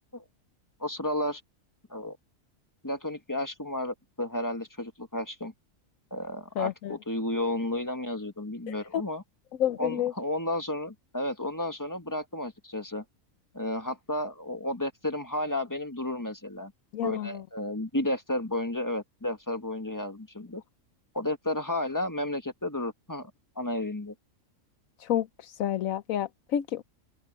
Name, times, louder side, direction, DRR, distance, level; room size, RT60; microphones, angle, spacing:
voice 1, 0.8-1.4 1.9-2.2 2.8-5.5 6.1-9.2 9.8-13.0 13.5-16.7 17.0-20.6 21.1-24.1, left 1 dB, 15° left, 1.5 m, -32 dB
voice 2, 6.6-6.9 8.7-9.0 9.6-10.1 16.9-17.4 25.0-26.8, left 10 dB, 80° left, 1.2 m, -30 dB
open air
omnidirectional pair, 1.4 m